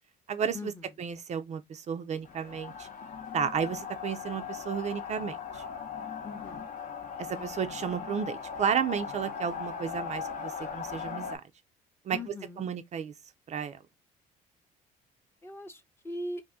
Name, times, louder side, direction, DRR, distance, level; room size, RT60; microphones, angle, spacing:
voice 1, 0.3-0.7 1.0-2.9 3.3-5.6 7.2-11.4 12.0-13.1 13.5-13.8, right 7 dB, 45° right, 0.4 m, -33 dB
sound 1, 2.2-11.4, left 6 dB, 50° left, 0.7 m, -39 dB
voice 2, 6.2-6.7 12.1-12.7 15.4-16.4, left 1 dB, 15° left, 0.7 m, -40 dB
2.7 x 2.6 x 3.4 m
cardioid pair, 110°, 17 cm